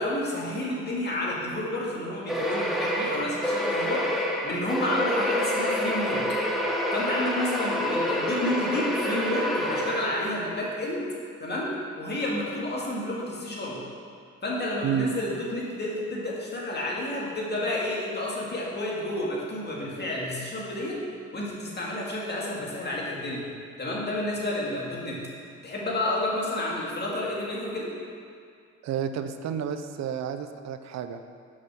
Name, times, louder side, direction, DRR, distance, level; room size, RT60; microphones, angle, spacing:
voice 1, 0.0-4.0 4.4-6.2 6.9-11.1 11.4-11.7 12.0-13.8 14.4-21.0 21.3-23.4 23.8-25.2 25.6-27.9, left 1 dB, 35° left, -4 dB, 2.1 m, -30 dB
sound 1, 2.3-10.6, equal, ahead, 0.9 m, -28 dB
voice 2, 28.8-31.2, right 8 dB, 60° right, 9 dB, 0.6 m, -30 dB
6.2 x 5.9 x 6.2 m, 2.2 s
cardioid pair, 90°, 30 cm